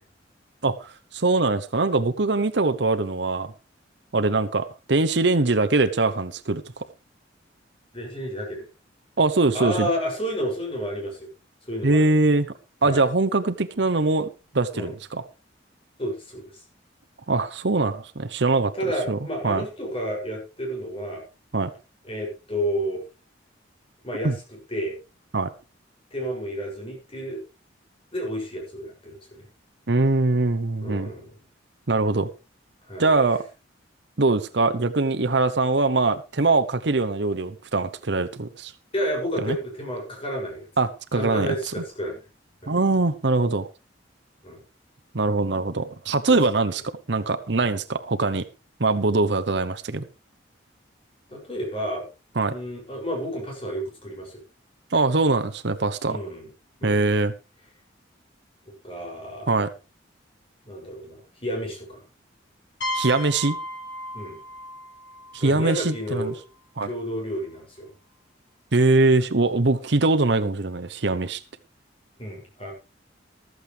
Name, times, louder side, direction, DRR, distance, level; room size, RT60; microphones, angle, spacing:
voice 1, 0.6-3.5 4.1-6.6 9.2-9.9 11.8-12.5 12.8-14.3 14.5-15.2 17.3-18.7 19.1-19.2 19.4-19.6 21.5-21.7 24.2-24.3 25.3-25.5 29.9-31.1 31.9-32.3 33.0-33.4 34.2-38.7 39.4-39.6 40.8-41.6 42.7-43.7 45.1-46.8 47.1-48.4 48.8-50.0 52.4-52.5 54.9-56.2 56.8-57.3 59.5-59.7 62.9-63.6 65.3-66.3 66.8-66.9 68.7-71.4, right 3 dB, 60° right, 11 dB, 0.9 m, -22 dB
voice 2, 7.9-8.7 9.5-11.3 11.6-12.1 12.8-13.0 14.7-14.9 16.0-16.6 18.7-21.2 22.0-23.0 24.0-25.0 26.1-27.4 28.1-29.5 30.8-31.3 32.9-33.1 38.9-40.7 41.1-42.3 42.6-42.8 44.4-44.6 46.1-46.4 51.3-52.1 52.4-54.4 56.1-56.5 56.8-57.0 58.8-59.6 60.7-62.0 64.1-64.4 65.4-66.4 66.8-67.9 72.2-72.7, equal, 30° left, -1 dB, 7.1 m, -31 dB
sound 1, 62.8-66.4, equal, 70° left, 6.1 m, -35 dB
14.5 x 13.5 x 3.4 m, 0.31 s
head